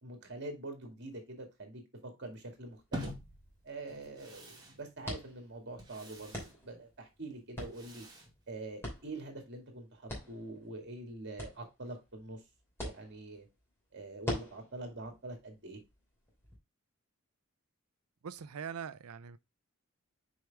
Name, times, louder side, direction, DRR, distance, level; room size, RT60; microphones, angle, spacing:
voice 1, 0.0-3.1 3.6-6.4 6.6-8.0 8.5-12.4 12.8-13.5 13.9-15.8, right 2 dB, 55° right, 2.1 m, -45 dB
sound 1, 2.4-16.6, left 1 dB, 10° left, 2.9 m, -47 dB
sound 2, 2.9-9.1, equal, 20° right, 2.1 m, -48 dB
voice 2, 18.2-19.4, right 7 dB, 85° right, 0.5 m, -42 dB
6.3 x 4.9 x 3.4 m
head